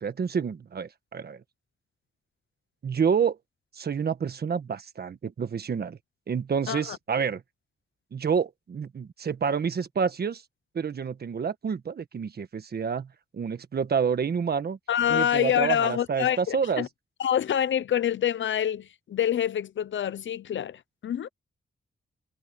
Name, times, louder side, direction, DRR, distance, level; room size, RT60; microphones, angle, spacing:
voice 1, 0.0-1.4 2.8-3.4 3.7-6.0 6.3-7.4 8.1-10.4 10.7-14.8 15.1-16.9, right 6 dB, 55° right, 1.4 m, -28 dB
voice 2, 14.9-16.9 17.2-21.3, left 10 dB, 70° left, 0.7 m, -26 dB
wide cardioid pair, 125°, 20 cm